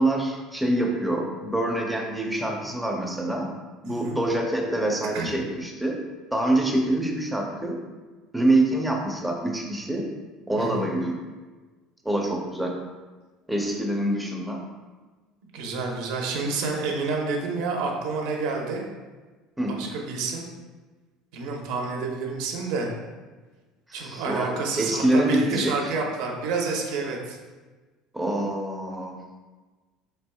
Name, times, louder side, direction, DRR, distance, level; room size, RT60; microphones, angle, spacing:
voice 1, 0.0-3.5 3.8-6.0 6.3-7.8 8.3-10.1 10.5-11.2 12.0-12.7 13.5-14.6 19.6-19.8 23.9-25.7 28.1-29.2, right 1 dB, 5° right, 1 dB, 0.5 m, -25 dB
voice 2, 3.9-4.2 5.1-5.3 10.6-10.9 15.5-18.8 19.7-20.4 21.3-22.9 23.9-27.4, right 4 dB, 75° right, 0 dB, 0.8 m, -29 dB
4.9 x 4.3 x 2.3 m, 1.3 s
cardioid pair, 155°, 0 cm